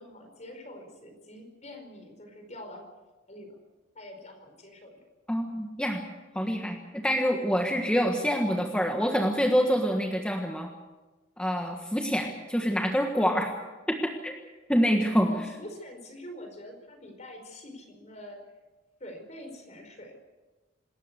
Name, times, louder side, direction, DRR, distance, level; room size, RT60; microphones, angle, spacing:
voice 1, 0.0-2.9 3.3-3.6 3.9-5.0 15.1-18.4 19.0-20.1, left 1 dB, 35° left, 5 dB, 4.8 m, -45 dB
voice 2, 5.3-6.0 6.3-10.7 11.4-13.5 14.0-14.3 14.7-15.3, equal, 5° left, 2 dB, 1.5 m, -26 dB
26.5 x 13.5 x 8.2 m, 1.2 s
head